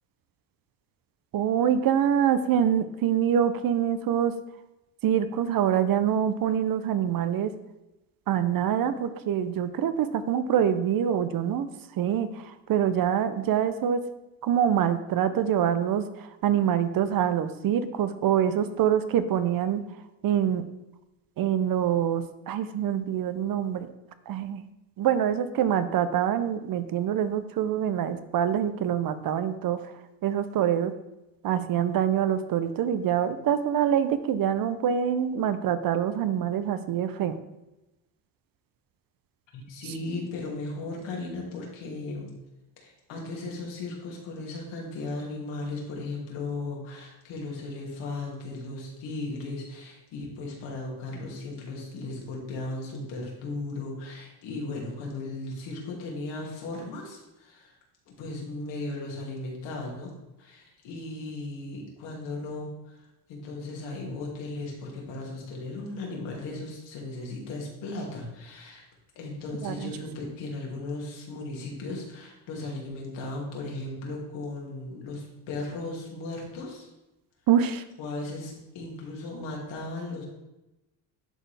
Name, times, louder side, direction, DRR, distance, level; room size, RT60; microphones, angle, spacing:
voice 1, 1.3-4.3 5.0-7.5 8.3-11.7 12.0-14.0 14.4-19.8 20.2-20.6 21.4-23.9 24.3-24.6 25.0-29.9 30.2-30.9 31.4-37.3 69.6-69.9 77.5-77.8, right 9 dB, 50° right, 12 dB, 0.7 m, -25 dB
voice 2, 39.5-42.4 42.8-57.8 58.1-60.1 60.4-63.0 63.3-68.8 69.2-76.9 78.0-80.2, left 2 dB, 80° left, -2 dB, 2.3 m, -36 dB
11.0 x 4.1 x 3.3 m, 0.96 s
supercardioid pair, 90°, 43 cm